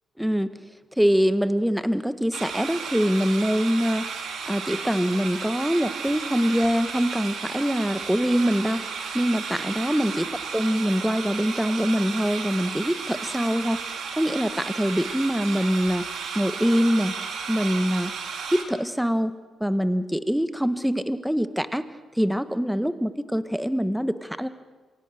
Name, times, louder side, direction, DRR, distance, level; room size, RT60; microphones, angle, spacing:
voice 1, 0.2-0.5 1.0-4.0 4.4-8.8 9.1-10.2 10.5-13.8 14.2-16.1 16.3-17.1 17.5-18.1 18.5-21.8 22.2-24.5, equal, 5° right, 12 dB, 1.6 m, -24 dB
sound 1, 2.3-18.6, right 5 dB, 65° right, 3.0 m, -33 dB
28.0 x 23.0 x 6.7 m, 1.4 s
hypercardioid pair, 45°, 0 cm